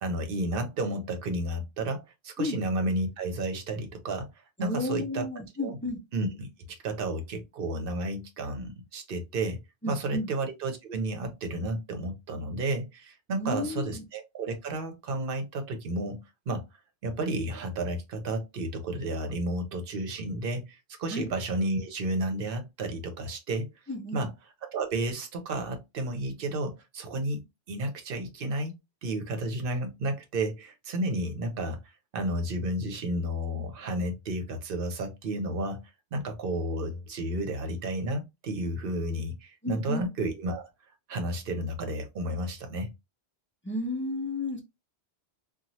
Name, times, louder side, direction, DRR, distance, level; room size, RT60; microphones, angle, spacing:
voice 1, 0.0-4.3 4.6-5.2 5.6-5.8 6.1-9.6 9.9-16.2 16.5-16.6 17.0-23.7 24.1-24.3 24.6-27.4 27.7-28.8 29.0-31.8 32.1-35.8 36.1-40.7 41.1-42.9, right 1 dB, 60° right, 0.8 m, -32 dB
voice 2, 4.6-6.0 9.8-10.3 13.3-14.0 21.1-21.3 23.9-24.3 39.6-40.1 43.6-44.6, left 2 dB, 20° left, 0.3 m, -32 dB
2.9 x 2.3 x 2.7 m
omnidirectional pair, 1.1 m